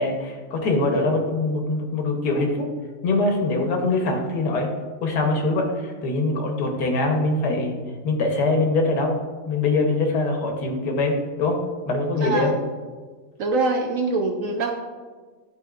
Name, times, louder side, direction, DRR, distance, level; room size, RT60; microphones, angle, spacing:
voice 1, 0.0-2.7 3.0-4.7 5.0-7.8 8.0-9.2 9.5-11.6 11.9-12.5, left 2 dB, 75° left, 2 dB, 1.5 m, -23 dB
voice 2, 12.2-12.6 13.4-14.8, right 3 dB, 65° right, 3 dB, 0.8 m, -24 dB
11.5 x 4.1 x 2.4 m, 1.4 s
omnidirectional pair, 1.8 m